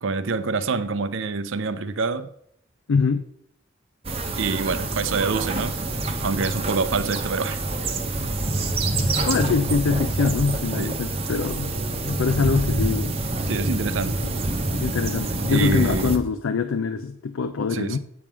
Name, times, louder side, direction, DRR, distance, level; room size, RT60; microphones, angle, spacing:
voice 1, 0.0-2.3 4.4-5.8 6.2-7.6 10.8-10.9 13.5-14.2 15.5-16.1 17.7-18.0, right 4 dB, 70° right, 12 dB, 0.6 m, -26 dB
voice 2, 2.9-3.2 9.3-11.7 12.0-13.2 14.2-14.4 14.7-18.0, left 5 dB, 85° left, 9 dB, 0.5 m, -24 dB
sound 1, 4.0-16.2, right 2 dB, 30° right, 0.8 m, -26 dB
8.6 x 3.6 x 6.0 m, 0.74 s
head